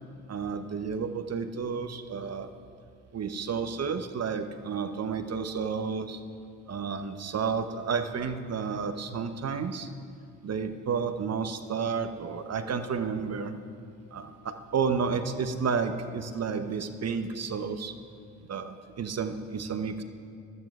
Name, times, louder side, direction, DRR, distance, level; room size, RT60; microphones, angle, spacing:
voice 1, 0.3-2.5 3.1-6.2 6.7-9.9 10.4-13.5 14.1-17.9 18.5-20.0, right 5 dB, 35° right, 8 dB, 0.9 m, -31 dB
19.0 x 12.0 x 2.4 m, 2.4 s
hypercardioid pair, 50°, 43 cm